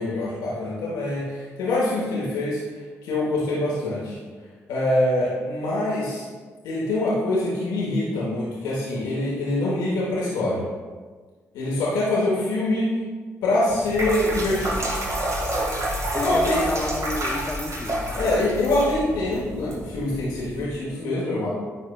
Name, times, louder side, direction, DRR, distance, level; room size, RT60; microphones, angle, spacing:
voice 1, 0.0-2.6 3.0-4.1 4.7-6.2 6.6-10.6 11.5-12.9 13.4-14.8 16.2-16.7 18.1-21.5, left 1 dB, 85° left, -6 dB, 1.1 m, -24 dB
sound 1, 13.7-20.6, right 1 dB, 50° right, 1.7 m, -29 dB
voice 2, 16.1-18.3, left 2 dB, 30° left, 2 dB, 0.5 m, -31 dB
9.7 x 4.2 x 2.3 m, 1.5 s
hypercardioid pair, 45°, 7 cm